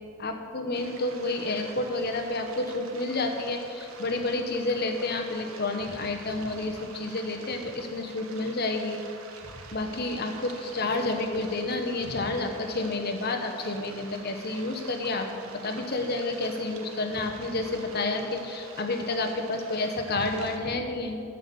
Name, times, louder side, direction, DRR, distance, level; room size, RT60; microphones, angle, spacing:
voice 1, 0.2-9.0 9.7-15.3 15.6-21.2, left 2 dB, 50° left, 4 dB, 1.1 m, -30 dB
sound 1, 0.7-20.6, right 4 dB, 80° right, 1.1 m, -47 dB
9.9 x 7.8 x 6.9 m, 2.5 s
head